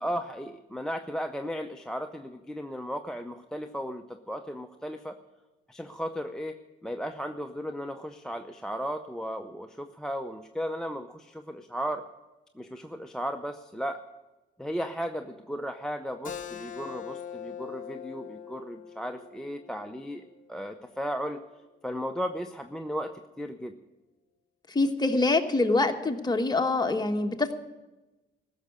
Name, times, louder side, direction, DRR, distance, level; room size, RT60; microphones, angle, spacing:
voice 1, 0.0-5.2 5.7-12.0 12.6-14.0 14.6-21.4 21.8-23.8, equal, 5° left, 8 dB, 0.6 m, -35 dB
Keyboard (musical), 16.2-21.4, left 8 dB, 40° left, 1.4 m, -43 dB
voice 2, 24.7-27.6, left 3 dB, 20° left, 5 dB, 1.2 m, -25 dB
15.0 x 6.5 x 9.6 m, 1.1 s
cardioid pair, 90°, 20 cm